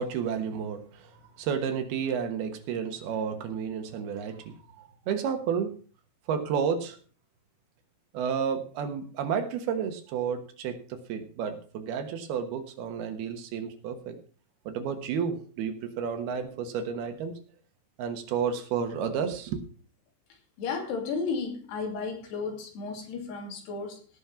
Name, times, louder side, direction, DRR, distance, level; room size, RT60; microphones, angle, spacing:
voice 1, 0.0-5.7 6.3-7.0 8.1-14.1 14.7-17.3 18.0-19.6, right 7 dB, 70° right, 7 dB, 3.2 m, -31 dB
voice 2, 20.6-24.0, left 4 dB, 80° left, 3 dB, 4.8 m, -33 dB
17.5 x 6.5 x 5.7 m, 0.41 s
omnidirectional pair, 4.8 m